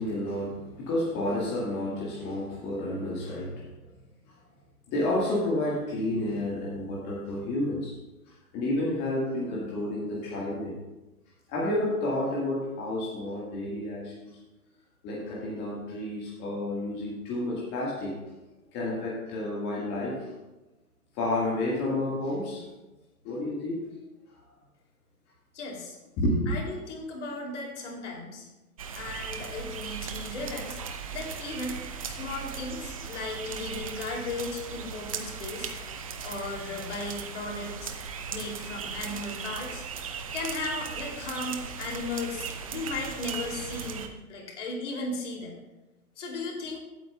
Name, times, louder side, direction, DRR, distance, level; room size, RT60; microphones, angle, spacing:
voice 1, 0.0-3.7 4.3-4.4 4.9-7.9 8.3-10.8 11.5-14.4 15.0-18.2 18.7-20.3 21.1-22.7 23.2-23.8 26.2-26.5, left 1 dB, 25° left, -5 dB, 1.7 m, -30 dB
voice 2, 25.5-26.0 26.5-28.5 28.9-30.8 31.1-31.8 32.0-35.7 36.2-37.9 38.3-39.8 40.3-45.6 46.2-46.8, left 2 dB, 50° left, 0 dB, 2.9 m, -36 dB
sound 1, 28.8-44.1, right 6 dB, 25° right, 0.4 m, -38 dB
15.5 x 8.5 x 2.3 m, 1.0 s
figure-of-eight pair, 125°, 45 cm